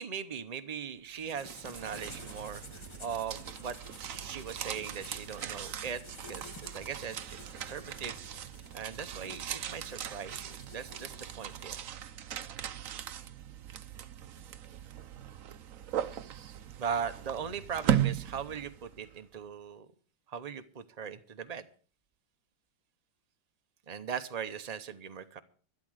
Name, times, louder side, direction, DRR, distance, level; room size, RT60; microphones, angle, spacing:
voice 1, 0.0-6.0 6.3-8.2 8.7-11.7 16.1-19.9 20.3-21.7 23.9-25.4, right 7 dB, 85° right, 9 dB, 0.3 m, -39 dB
sound 1, 1.1-19.1, right 9 dB, 60° right, 0.9 m, -38 dB
sound 2, 1.2-11.9, left 2 dB, 15° left, 1.2 m, -51 dB
12.5 x 11.5 x 6.4 m, 0.41 s
omnidirectional pair, 2.1 m